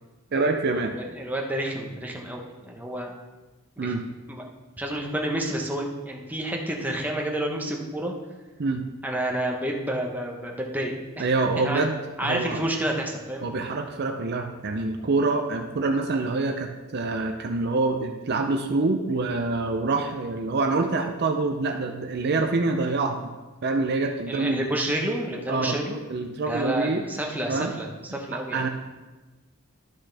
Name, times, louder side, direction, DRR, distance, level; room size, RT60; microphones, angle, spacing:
voice 1, 0.3-1.0 3.8-4.0 8.6-8.8 11.2-12.0 12.2-12.6 13.4-23.3 23.6-24.6 25.5-25.8 26.1-27.0 27.5-27.7 28.5-28.7, right 3 dB, 50° right, 4 dB, 0.5 m, -26 dB
voice 2, 0.9-3.1 3.8-3.9 4.3-4.4 4.8-8.1 9.0-11.3 11.6-11.8 12.2-13.5 24.3-26.0 26.5-28.6, right 1 dB, 10° right, 0 dB, 0.9 m, -29 dB
11.5 x 6.2 x 3.4 m, 1.2 s
head